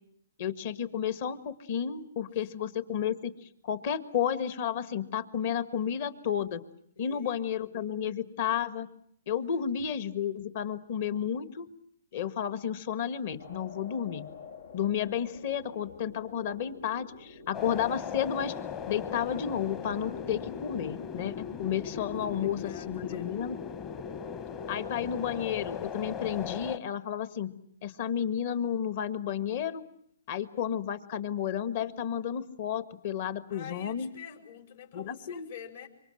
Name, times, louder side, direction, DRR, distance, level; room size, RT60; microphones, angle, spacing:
voice 1, 0.4-6.6 7.0-8.9 9.3-11.7 12.1-14.3 14.7-18.5 18.9-22.6 22.9-23.6 24.7-27.5 27.8-29.8 30.3-34.1 34.9-35.5, left 9 dB, 45° left, 13 dB, 1.6 m, -32 dB
voice 2, 7.0-7.7 9.4-9.7 21.8-23.3 33.5-35.9, left 7 dB, 60° left, 4 dB, 5.1 m, -47 dB
sound 1, 13.4-21.7, left 6 dB, 90° left, 2.6 m, -48 dB
sound 2, 17.5-26.8, left 7 dB, 25° left, 1.1 m, -38 dB
26.0 x 24.5 x 7.7 m, 0.69 s
hypercardioid pair, 155°, 0 cm